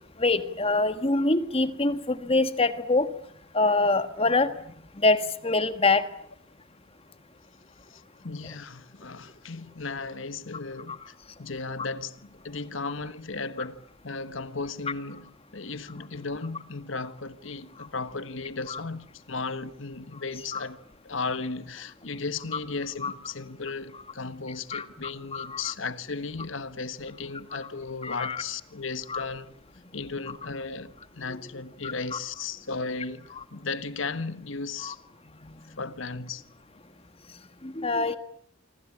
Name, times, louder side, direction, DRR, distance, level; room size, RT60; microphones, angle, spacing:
voice 1, 0.2-3.1 3.5-4.5 5.0-6.1 18.7-18.8 20.5-20.6 23.0-23.1 24.7-25.7 28.0-28.4 29.1-29.2 34.8-34.9 37.6-38.2, left 3 dB, 30° left, 1.5 m, -25 dB
voice 2, 7.9-29.5 29.9-35.0 35.8-36.4, left 4 dB, 70° left, 1.4 m, -35 dB
26.0 x 25.5 x 8.7 m
head